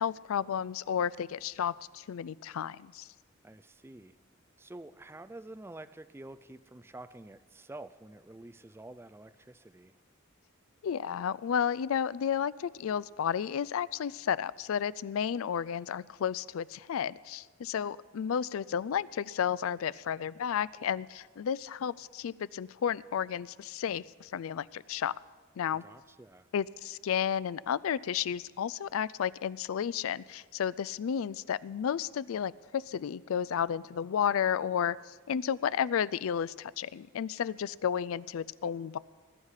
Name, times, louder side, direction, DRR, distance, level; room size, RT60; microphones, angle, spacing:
voice 1, 0.0-3.1 10.8-25.1 25.6-25.8 26.5-39.0, left 8 dB, 75° left, 19 dB, 0.4 m, -32 dB
voice 2, 3.4-4.2 4.6-10.0 25.8-26.5, right 2 dB, 10° right, 12 dB, 0.4 m, -48 dB
20.0 x 9.9 x 4.9 m, 1.4 s
head